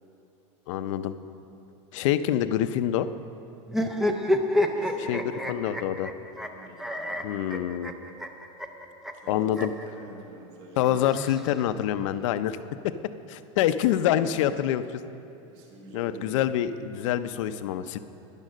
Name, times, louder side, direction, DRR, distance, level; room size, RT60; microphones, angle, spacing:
voice 1, 0.7-1.1 1.9-3.1 5.0-5.2 5.5-6.1 7.2-7.9 9.3-9.7 10.8-12.6 12.8-12.9 13.3-14.8 15.9-18.0, left 11 dB, 70° left, 11 dB, 0.6 m, -26 dB
sound 1, 3.7-9.9 10.8-12.0, left 1 dB, ahead, 0.5 m, -29 dB
voice 2, 4.6-5.6 6.5-7.2 9.1-11.1 13.9-14.6 15.5-16.6, right 2 dB, 50° right, -2 dB, 2.1 m, -46 dB
10.5 x 10.5 x 6.3 m, 2.9 s
supercardioid pair, 150°, 17 cm